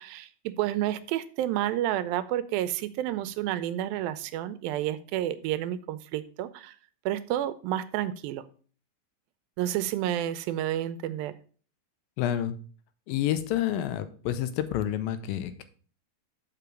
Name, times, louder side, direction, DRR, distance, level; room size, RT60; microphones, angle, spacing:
voice 1, 0.0-6.8 7.1-8.4 9.6-11.3, right 12 dB, 85° right, 14 dB, 2.4 m, -30 dB
voice 2, 12.2-12.6 13.1-15.7, left 11 dB, 90° left, 11 dB, 2.4 m, -29 dB
6.8 x 5.2 x 6.1 m, 0.41 s
omnidirectional pair, 4.1 m